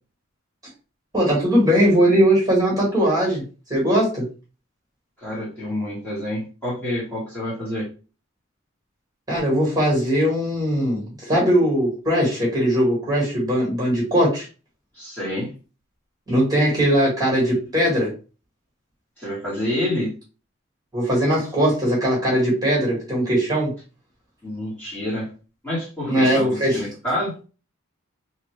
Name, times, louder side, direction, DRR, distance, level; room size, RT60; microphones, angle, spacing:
voice 1, 1.1-3.4 3.7-4.2 9.3-14.4 16.3-18.1 20.9-23.7 26.1-26.8, equal, 20° right, -4 dB, 1.5 m, -20 dB
voice 2, 5.2-7.9 14.9-15.5 19.2-20.1 24.4-25.3 25.6-27.3, left 1 dB, 10° left, -8 dB, 1.4 m, -28 dB
2.8 x 2.5 x 3.2 m, 0.34 s
head